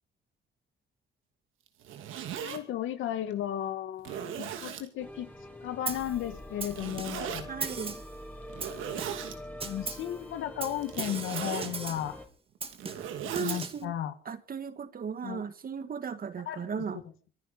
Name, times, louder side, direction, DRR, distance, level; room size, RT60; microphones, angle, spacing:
Zipper (clothing), 1.7-2.6 3.3-3.4 4.0-4.9 6.7-7.4 8.5-9.4 10.8-11.8 12.6-13.7, right 9 dB, 85° right, 2.6 m, -38 dB
voice 1, 2.4-5.3 5.6-7.5 9.6-12.2 13.4-14.2 15.2-15.4 16.5-17.0, left 11 dB, 85° left, 2.0 m, -35 dB
sound 1, 5.0-12.3, left 1 dB, 10° left, 4.1 m, -45 dB
Snare drum, 5.9-6.2 6.6-7.3 7.6-8.2 8.6-9.3 9.6-10.1 10.6-12.1 12.6-13.8, right 4 dB, 30° right, 2.0 m, -38 dB
voice 2, 7.5-8.0 13.3-13.9 14.3-17.0, right 6 dB, 45° right, 1.9 m, -36 dB
24.0 x 10.0 x 5.4 m
cardioid pair, 90°, 20 cm